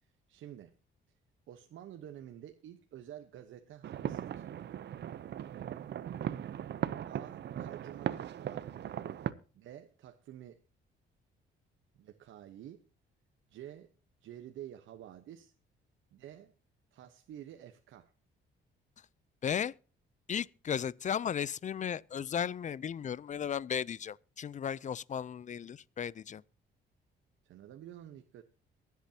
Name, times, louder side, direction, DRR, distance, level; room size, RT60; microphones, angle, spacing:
voice 1, 0.0-0.8 1.5-4.5 7.1-8.7 9.5-10.6 11.9-12.8 13.5-13.9 14.2-15.5 16.1-16.5 16.9-18.1 27.4-28.4, right 11 dB, 75° right, 1.1 m, -49 dB
sound 1, 3.8-9.3, right 10 dB, 60° right, 0.8 m, -38 dB
voice 2, 19.4-19.7 20.3-26.4, left 8 dB, 40° left, 0.5 m, -35 dB
23.0 x 8.3 x 2.9 m
cardioid pair, 90°, 20 cm